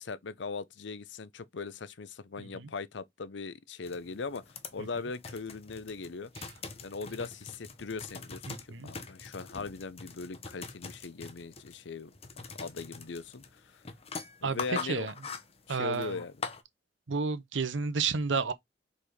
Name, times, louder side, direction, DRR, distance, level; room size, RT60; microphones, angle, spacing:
voice 1, 0.0-6.3 6.8-12.1 12.6-13.4 13.7-13.8 14.4-15.1 15.7-16.3, left 4 dB, 70° left, 0.6 m, -39 dB
voice 2, 2.4-2.7 4.8-4.9 8.5-8.9 14.4-15.1 15.7-16.2 17.1-18.5, right 5 dB, 90° right, 0.8 m, -31 dB
sound 1, 3.8-16.6, left 5 dB, 35° left, 0.9 m, -44 dB
4.6 x 4.2 x 5.0 m
head